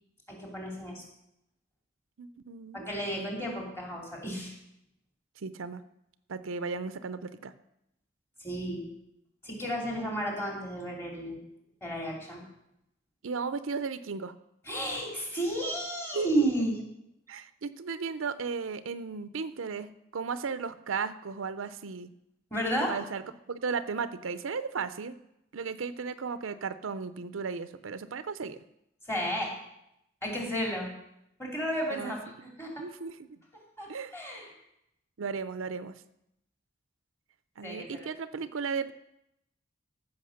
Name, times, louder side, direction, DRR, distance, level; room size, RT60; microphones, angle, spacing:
voice 1, 0.3-1.0 2.7-4.5 8.4-8.8 9.4-11.4 11.8-12.4 14.7-16.8 22.5-22.9 29.1-29.5 30.2-30.9 31.4-32.2 32.6-32.7 33.8-34.5 37.6-38.1, right 1 dB, 15° left, -1 dB, 2.9 m, -32 dB
voice 2, 2.2-2.9 5.4-5.8 6.3-7.5 13.2-14.3 16.1-16.3 17.3-22.1 22.9-25.2 25.5-28.6 31.9-32.2 32.8-33.4 33.9-34.1 35.2-36.0 37.6-38.9, right 5 dB, 85° right, 13 dB, 0.6 m, -35 dB
14.5 x 5.9 x 6.5 m, 0.82 s
head